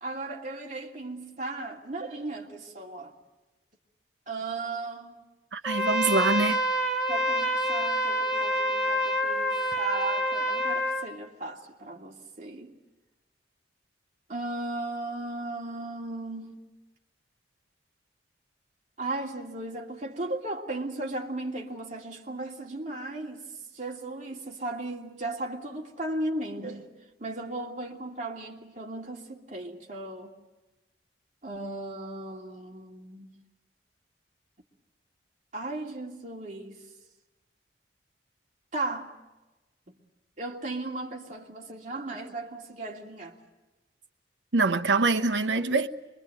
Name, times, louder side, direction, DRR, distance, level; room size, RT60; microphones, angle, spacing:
voice 1, 0.0-3.1 4.3-5.2 7.1-12.7 14.3-16.6 19.0-23.4 23.7-26.9 27.2-30.4 31.4-33.3 35.5-36.8 38.7-39.1 39.9-40.0 40.4-43.4, right 2 dB, 45° right, 2.7 m, -36 dB
voice 2, 5.5-6.6 44.5-45.9, right 3 dB, 90° right, 1.1 m, -24 dB
Trumpet, 5.6-11.1, equal, 5° right, 2.2 m, -27 dB
25.0 x 23.0 x 7.9 m
head